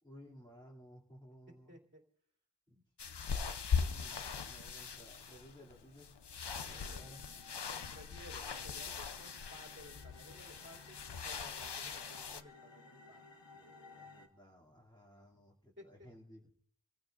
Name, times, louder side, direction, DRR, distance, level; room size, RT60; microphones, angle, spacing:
voice 1, 0.0-1.8 2.7-2.8 3.7-6.1 6.6-7.2 13.5-16.5, equal, 10° left, -6 dB, 2.7 m, -58 dB
voice 2, 1.7-2.0 6.9-7.1 7.9-11.0 11.2-13.2 15.8-16.1, equal, 25° right, -2 dB, 3.0 m, -56 dB
sound 1, 3.0-12.4, left 6 dB, 70° left, 0.7 m, -40 dB
sound 2, 6.5-14.3, left 3 dB, 85° left, 1.6 m, -58 dB
28.0 x 15.5 x 2.5 m, 0.68 s
wide cardioid pair, 40°, 42 cm